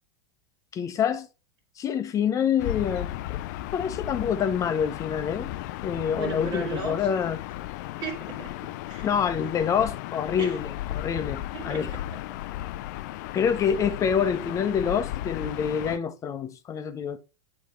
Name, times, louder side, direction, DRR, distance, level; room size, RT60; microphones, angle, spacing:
voice 1, 0.7-1.3 1.8-3.1 3.7-5.5 5.8-7.4 9.0-11.9 13.3-17.2, left 7 dB, 25° left, 0.8 m, -26 dB
Gull seagull / Ocean, 2.6-16.0, left 14 dB, 45° left, 0.4 m, -35 dB
voice 2, 6.1-7.1 7.9-9.1 10.4-10.6 11.5-12.0, right 4 dB, 45° right, 1.6 m, -36 dB
9.2 x 3.7 x 3.2 m
figure-of-eight pair, 90°, 13 cm